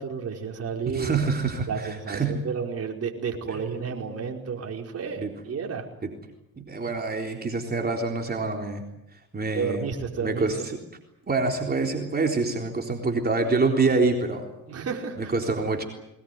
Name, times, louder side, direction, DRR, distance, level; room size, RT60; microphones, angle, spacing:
voice 1, 0.0-1.2 1.7-5.8 9.5-10.4 14.7-15.3, right 6 dB, 55° right, 1 dB, 5.0 m, -31 dB
voice 2, 0.9-2.4 3.5-3.6 5.2-5.3 6.0-6.1 6.6-8.8 9.3-9.8 10.2-10.8 11.3-14.5 15.2-15.8, right 3 dB, 30° right, 2 dB, 3.9 m, -26 dB
22.5 x 20.0 x 9.4 m, 0.88 s
cardioid pair, 90°, 30 cm